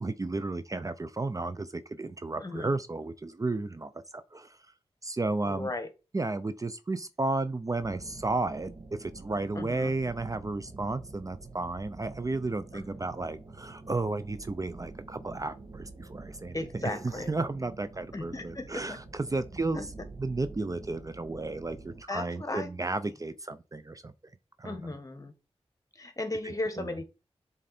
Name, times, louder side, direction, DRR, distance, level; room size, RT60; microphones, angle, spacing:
voice 1, 0.0-4.6 5.0-5.7 6.1-19.8 20.2-24.1 24.6-24.7 26.8-26.9, right 2 dB, 30° right, 0.5 m, -33 dB
voice 2, 2.4-2.7 5.4-5.9 9.5-9.9 12.7-12.8 16.5-17.3 18.1-19.0 19.7-19.8 22.1-22.7 24.6-25.3 25.9-27.0, left 2 dB, 30° left, 1.4 m, -36 dB
sound 1, 7.8-22.0, right 3 dB, 60° right, 1.5 m, -47 dB
7.5 x 3.9 x 4.2 m
cardioid pair, 60°, 11 cm